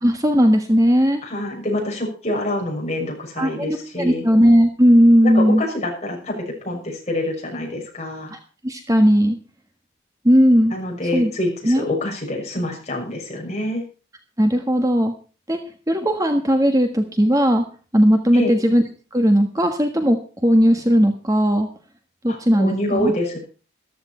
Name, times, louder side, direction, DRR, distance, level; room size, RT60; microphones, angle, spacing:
voice 1, 0.0-1.2 3.4-5.6 8.6-9.4 10.2-10.7 11.1-11.3 11.6-11.8 14.4-15.1 15.5-15.6 15.9-17.6 17.9-18.8 19.1-21.7 22.2-23.1, equal, 15° right, 5 dB, 1.4 m, -17 dB
voice 2, 1.2-4.2 5.2-8.3 10.7-13.8 18.3-18.6 22.3-23.4, left 1 dB, 35° left, 0 dB, 6.2 m, -26 dB
14.5 x 13.0 x 4.4 m, 0.37 s
head